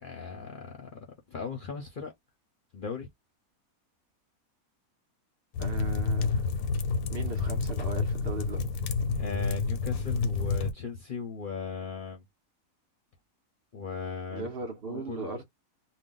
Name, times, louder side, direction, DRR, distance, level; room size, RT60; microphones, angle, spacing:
voice 1, 0.0-2.1 2.7-3.1 9.2-12.2 13.7-14.5 14.9-15.4, left 5 dB, 50° left, 0.7 m, -38 dB
sound 1, 5.5-10.7, left 4 dB, 90° left, 1.1 m, -29 dB
voice 2, 5.6-6.5 7.1-8.7 14.3-15.4, right 3 dB, 55° right, 0.8 m, -37 dB
2.6 x 2.2 x 3.7 m
omnidirectional pair, 1.5 m